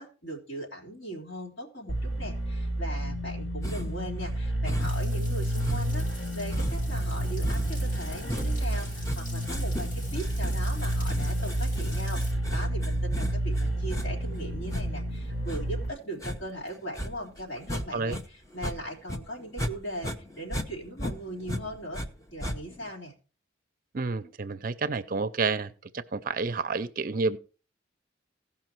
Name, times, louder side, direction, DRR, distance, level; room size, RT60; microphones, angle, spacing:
voice 1, 0.0-22.0 22.3-23.1, right 1 dB, 60° left, 3.8 m, -39 dB
sound 1, 1.9-15.9, right 1 dB, 85° left, 2.0 m, -30 dB
sound 2, 3.6-4.1 4.7-5.1 5.6-18.2 18.5-19.7 20.0-22.1 22.4-22.9, equal, 15° left, 0.8 m, -36 dB
Frying (food), 4.8-12.3, left 1 dB, 40° left, 6.3 m, -47 dB
voice 2, 23.9-27.4, right 4 dB, 45° right, 0.5 m, -30 dB
16.5 x 5.7 x 4.5 m
head